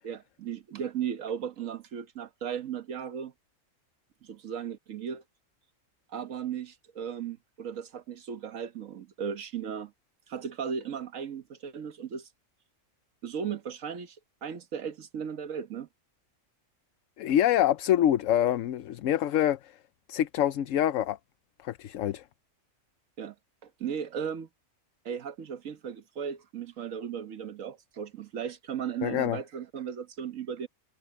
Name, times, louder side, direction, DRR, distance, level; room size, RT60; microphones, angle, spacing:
voice 1, 0.0-3.3 4.2-5.2 6.1-9.9 10.3-12.3 13.2-15.9 23.2-23.3 23.6-24.5 25.0-30.7, right 8 dB, 80° right, 1.5 m, -36 dB
voice 2, 17.2-19.7 20.1-21.2 21.6-22.2 29.0-29.4, left 11 dB, 75° left, 1.0 m, -25 dB
omnidirectional pair, 1.4 m